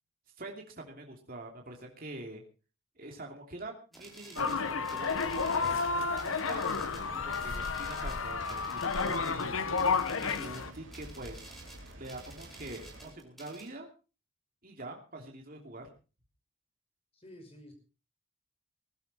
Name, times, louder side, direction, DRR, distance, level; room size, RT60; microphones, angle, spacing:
voice 1, 0.4-2.4 3.0-5.8 6.1-6.7 7.1-9.8 10.2-11.4 12.0-13.9 14.6-15.9, right 2 dB, 45° right, 1 dB, 2.8 m, -45 dB
sound 1, 3.9-13.7, right 2 dB, ahead, 4.9 m, -52 dB
sound 2, 4.4-10.7, left 4 dB, 90° left, 1.2 m, -31 dB
sound 3, 6.7-13.1, right 1 dB, 70° right, 4.0 m, -50 dB
voice 2, 17.2-17.7, left 1 dB, 30° left, 5 dB, 5.3 m, -50 dB
21.0 x 12.0 x 4.3 m, 0.34 s
head